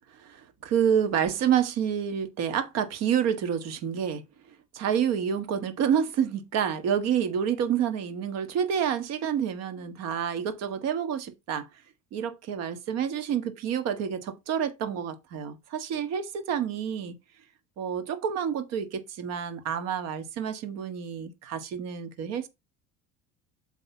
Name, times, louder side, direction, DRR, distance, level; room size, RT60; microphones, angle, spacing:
voice 1, 0.1-4.2 4.7-11.7 12.1-17.2 17.8-22.5, right 8 dB, 60° right, 1.6 m, -28 dB
8.1 x 3.5 x 5.7 m
supercardioid pair, 110°, 29 cm